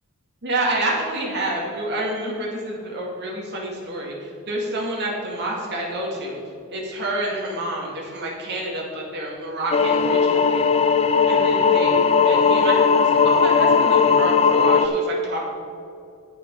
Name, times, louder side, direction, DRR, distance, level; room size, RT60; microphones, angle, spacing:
voice 1, 0.4-6.4 6.7-10.6 11.3-15.4, right 1 dB, 50° right, -3 dB, 2.3 m, -28 dB
sound 1, 9.7-14.9, left 5 dB, 25° left, 0.4 m, -17 dB
9.1 x 8.2 x 5.6 m, 2.5 s
head